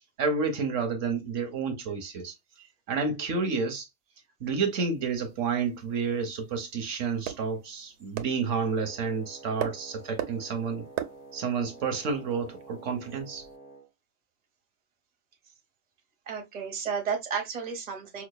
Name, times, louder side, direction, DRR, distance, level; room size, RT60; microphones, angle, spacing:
voice 1, 0.2-2.3 2.9-3.9 4.4-10.9 11.3-13.4, right 5 dB, 55° right, 1.0 m, -30 dB
sound 1, 4.7-13.6, right 11 dB, 80° right, 1.1 m, -42 dB
Wind instrument woodwind instrument, 8.5-13.9, right 3 dB, 5° right, 0.7 m, -49 dB
voice 2, 16.3-18.2, right 6 dB, 30° right, 0.9 m, -32 dB
5.0 x 2.4 x 2.2 m
omnidirectional pair, 1.8 m